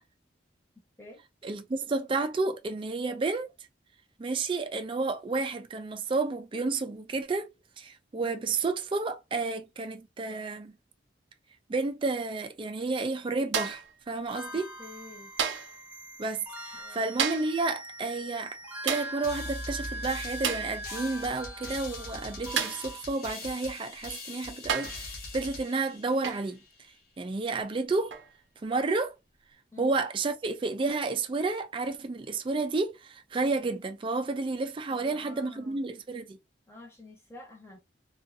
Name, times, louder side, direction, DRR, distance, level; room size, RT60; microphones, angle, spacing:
voice 1, 1.4-3.5 4.2-10.8 11.7-14.7 16.2-18.6 18.8-26.6 27.2-28.1 28.6-29.2 29.8-36.4, right 3 dB, 30° right, 0.3 m, -31 dB
sound 1, 13.5-13.9 15.4-15.8 17.2-17.6 18.9-19.2 20.4-20.7 22.6-22.9 24.0-24.1 24.7-25.1 26.2-26.5 28.1-28.3, right 7 dB, 90° right, 0.5 m, -31 dB
sound 2, 14.3-23.0, right 1 dB, 10° right, 0.8 m, -42 dB
voice 2, 14.8-15.3 16.8-17.0 29.7-29.9 34.9-35.8 36.7-37.8, left 2 dB, 15° left, 0.9 m, -49 dB
sound 3, 19.2-26.7, left 2 dB, 55° left, 0.9 m, -42 dB
2.5 x 2.4 x 2.5 m
head